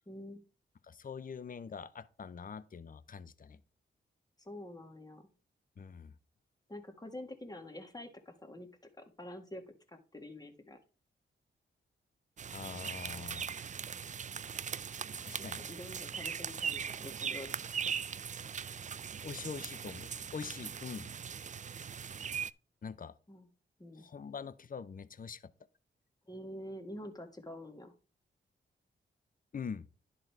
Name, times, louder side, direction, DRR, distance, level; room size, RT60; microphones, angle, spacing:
voice 1, 0.1-0.4 4.5-5.3 6.7-8.7 9.0-10.8 15.4-17.5 23.3-23.5 23.8-24.1 26.3-27.9, left 1 dB, 20° left, 1.7 m, -47 dB
voice 2, 0.8-3.6 5.8-6.1 12.5-13.5 15.3-15.6 19.2-21.1 22.8-23.1 23.9-25.5 29.5-29.9, left 6 dB, 40° left, 0.6 m, -44 dB
sound 1, 12.4-22.5, right 7 dB, 35° right, 0.4 m, -40 dB
11.0 x 3.9 x 4.5 m
cardioid pair, 55°, 21 cm